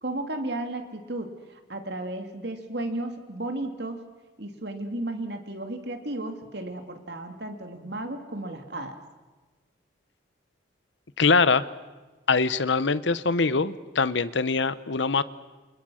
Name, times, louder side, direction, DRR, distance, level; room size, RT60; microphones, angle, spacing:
voice 1, 0.0-1.3 1.7-4.0 4.4-8.9, right 1 dB, 55° right, 6 dB, 2.7 m, -34 dB
voice 2, 11.2-11.6 12.3-15.2, left 4 dB, 70° left, 16 dB, 0.9 m, -23 dB
28.5 x 28.0 x 6.5 m, 1.2 s
head